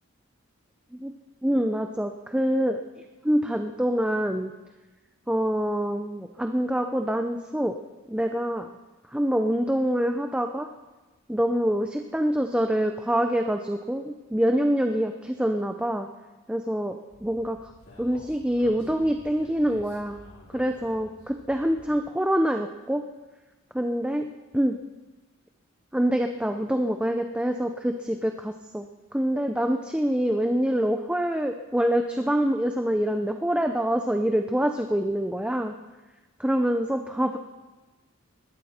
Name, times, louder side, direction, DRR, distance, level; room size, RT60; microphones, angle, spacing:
voice 1, 1.4-2.8 3.2-4.5 5.3-7.8 8.1-8.7 9.1-10.7 11.3-16.1 16.5-17.7 18.0-20.2 20.5-23.0 23.7-24.3 24.5-24.8 25.9-28.9 29.1-35.7 36.4-37.4, equal, 5° right, 5 dB, 0.5 m, -25 dB
Speech, 17.1-22.0, left 1 dB, 65° left, 5.9 m, -50 dB
20.5 x 14.5 x 4.3 m, 1.2 s
head